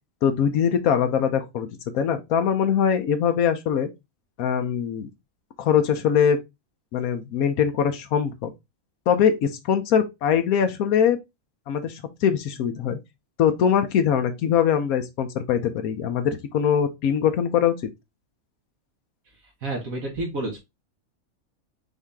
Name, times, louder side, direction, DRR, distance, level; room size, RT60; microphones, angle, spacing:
voice 1, 0.2-1.7 1.9-3.9 4.4-5.1 5.6-6.4 6.9-8.5 9.1-11.2 11.7-13.0 13.4-17.7, left 8 dB, 90° left, 1.2 m, -22 dB
voice 2, 19.6-20.6, right 2 dB, 75° right, 1.9 m, -29 dB
5.5 x 2.7 x 3.4 m
omnidirectional pair, 1.5 m